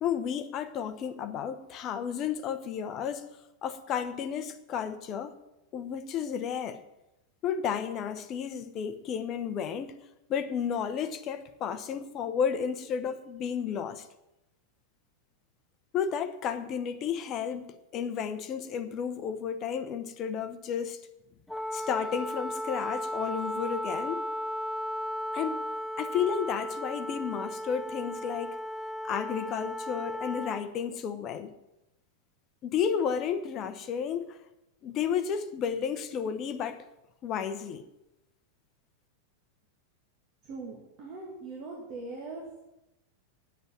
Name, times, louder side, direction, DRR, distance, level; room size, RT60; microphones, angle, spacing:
voice 1, 0.0-3.3 3.6-5.3 5.7-6.8 7.4-10.0 10.3-14.1 15.9-21.0 21.7-24.2 25.3-25.7 26.0-28.6 29.1-31.5 32.6-34.4 34.8-36.8 37.2-37.8, left 7 dB, 35° left, 1.0 m, -32 dB
Wind instrument woodwind instrument, 21.5-30.7, equal, 5° left, 0.5 m, -35 dB
voice 2, 40.4-42.6, right 3 dB, 40° right, 2.6 m, -41 dB
10.5 x 8.2 x 8.9 m
figure-of-eight pair, 90°, 0 cm